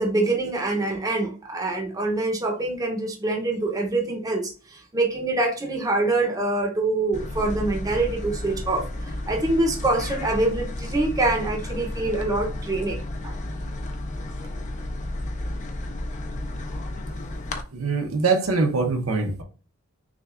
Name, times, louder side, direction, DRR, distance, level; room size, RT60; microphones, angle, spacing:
voice 1, 0.0-13.4, right 2 dB, 15° right, 0.7 m, -25 dB
sound 1, 7.1-17.6, left 1 dB, 35° left, 0.4 m, -32 dB
voice 2, 17.7-19.4, right 4 dB, 80° right, 0.9 m, -23 dB
6.0 x 2.3 x 2.4 m
head